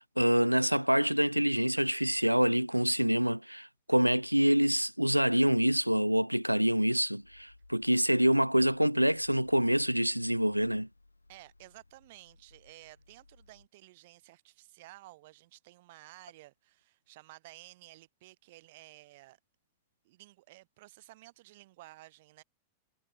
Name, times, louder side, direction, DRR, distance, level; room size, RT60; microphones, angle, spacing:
voice 1, 0.0-10.9, equal, 90° right, 0.5 m, -26 dB
sound 1, 6.7-13.7, left 2 dB, 85° left, 2.7 m, -62 dB
voice 2, 11.3-19.4 20.0-22.4, right 19 dB, 50° right, 2.3 m, -54 dB
figure-of-eight pair, 90°, 0 cm